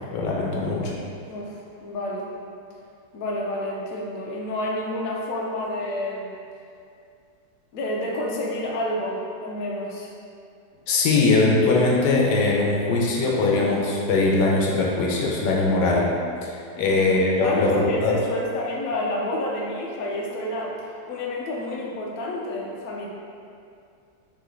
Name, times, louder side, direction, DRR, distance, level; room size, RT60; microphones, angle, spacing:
voice 1, 0.1-0.9 10.9-16.1 16.4-18.2, left 3 dB, 85° left, -3 dB, 1.3 m, -21 dB
voice 2, 1.3-2.3 3.1-6.3 7.7-10.1 16.8-17.0 17.4-20.7 21.1-23.1, left 1 dB, 65° left, -3 dB, 1.0 m, -29 dB
4.1 x 3.0 x 3.7 m, 2.5 s
omnidirectional pair, 1.9 m